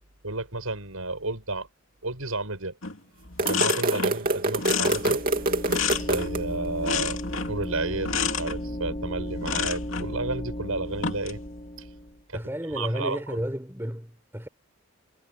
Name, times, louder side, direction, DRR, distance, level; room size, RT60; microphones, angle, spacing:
voice 1, 0.2-1.7 2.0-2.8 3.4-5.2 6.0-7.2 7.5-11.4 11.8-11.9 12.3-12.4 12.7-13.4, right 2 dB, 75° right, 6.7 m, -32 dB
sound 1, 2.8-3.0 3.2-4.2 4.6-6.4 6.8-7.6 8.0-8.6 9.4-10.1 10.9-11.4, left 6 dB, 65° left, 2.7 m, -29 dB
sound 2, 3.4-6.4, right 2 dB, 40° right, 2.7 m, -26 dB
sound 3, 4.5-12.2, equal, 30° left, 5.0 m, -35 dB
voice 2, 12.3-14.5, equal, 10° right, 4.9 m, -32 dB
head